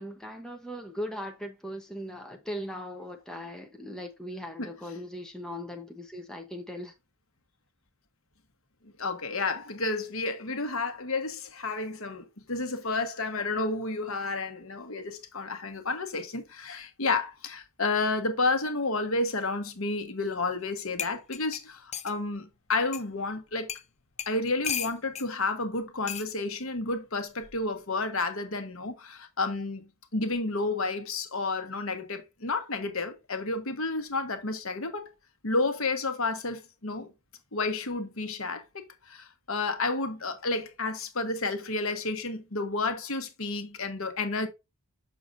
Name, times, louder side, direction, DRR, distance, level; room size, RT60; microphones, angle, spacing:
voice 1, 0.0-6.9, equal, 5° left, 0.8 m, -39 dB
voice 2, 8.8-23.7 24.3-35.1 35.4-37.1 37.5-44.5, left 3 dB, 65° left, 1.2 m, -31 dB
sound 1, 20.6-20.7 21.0-22.2 22.9-23.0 23.7-23.9 24.2-25.3 26.1-26.3 27.4-27.7, left 8 dB, 30° left, 0.5 m, -35 dB
6.8 x 6.3 x 2.6 m
head